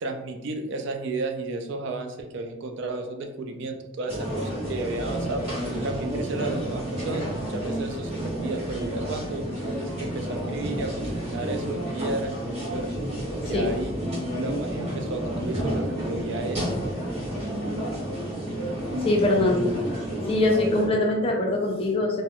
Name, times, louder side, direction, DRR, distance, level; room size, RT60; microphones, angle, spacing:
voice 1, 0.0-5.4 5.8-9.4 10.0-12.9 13.4-13.9 14.3-16.6, right 3 dB, 55° right, 5 dB, 0.3 m, -33 dB
sound 1, 4.1-20.9, right 1 dB, 30° right, 0.8 m, -30 dB
voice 2, 19.1-19.8 20.3-22.2, left 2 dB, 25° left, 0 dB, 0.3 m, -23 dB
2.3 x 2.0 x 2.8 m, 0.95 s
head